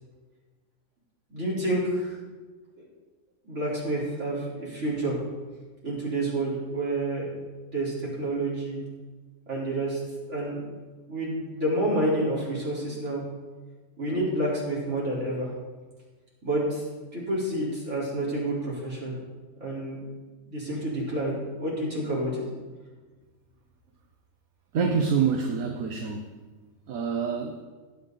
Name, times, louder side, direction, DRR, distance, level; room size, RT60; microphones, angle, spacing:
voice 1, 1.3-2.1 2.8-2.9 3.5-5.2 5.8-7.3 7.7-8.8 9.5-10.0 10.3-10.6 11.1-13.2 14.0-15.5 16.4-16.8 17.1-19.1 19.6-20.0 20.5-22.4, right 1 dB, 50° right, -6 dB, 4.4 m, -29 dB
voice 2, 24.7-26.3 26.9-27.6, right 6 dB, 70° right, 3 dB, 1.4 m, -26 dB
20.0 x 8.2 x 4.0 m, 1.3 s
omnidirectional pair, 1.6 m